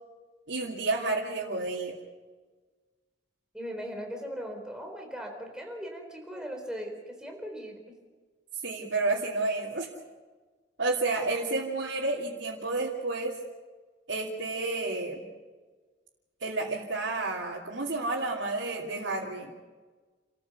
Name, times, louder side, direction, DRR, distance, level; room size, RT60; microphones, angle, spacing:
voice 1, 0.5-1.9 8.6-9.9 10.8-13.4 14.1-15.2 16.4-19.5, right 3 dB, 90° right, -6 dB, 2.9 m, -30 dB
voice 2, 3.5-8.0, equal, 5° right, 2 dB, 4.0 m, -39 dB
29.0 x 14.5 x 7.0 m, 1.4 s
head